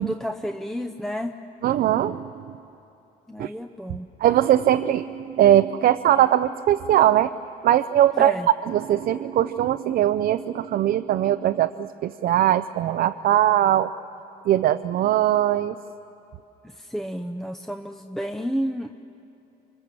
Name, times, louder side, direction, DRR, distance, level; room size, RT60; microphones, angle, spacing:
voice 1, 0.0-1.4 3.3-4.1 8.1-8.5 16.6-18.9, equal, ahead, 5 dB, 0.7 m, -31 dB
voice 2, 1.6-2.3 3.4-3.5 4.2-7.3 7.6-8.3 8.6-13.9 14.5-15.8, right 12 dB, 60° right, 9 dB, 0.6 m, -20 dB
26.0 x 24.5 x 7.6 m, 2.9 s
cardioid pair, 110°, 17 cm